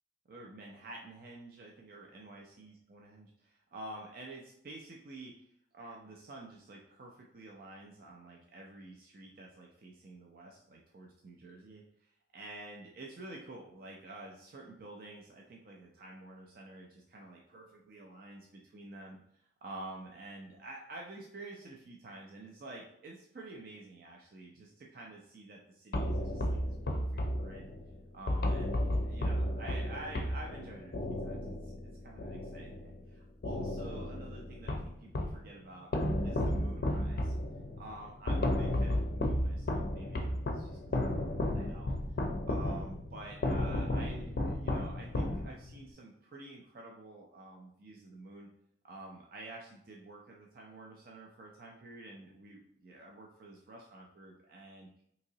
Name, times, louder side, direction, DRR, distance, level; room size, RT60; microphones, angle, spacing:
voice 1, 0.3-27.7 28.1-31.8 32.0-35.9 36.2-37.4 37.8-42.0 42.5-48.5 48.8-55.0, right 2 dB, 50° right, -1 dB, 0.4 m, -49 dB
sound 1, 25.9-33.1 33.4-35.5 35.9-45.8, left 1 dB, 50° left, 0.4 m, -33 dB
3.6 x 2.9 x 2.7 m, 0.71 s
head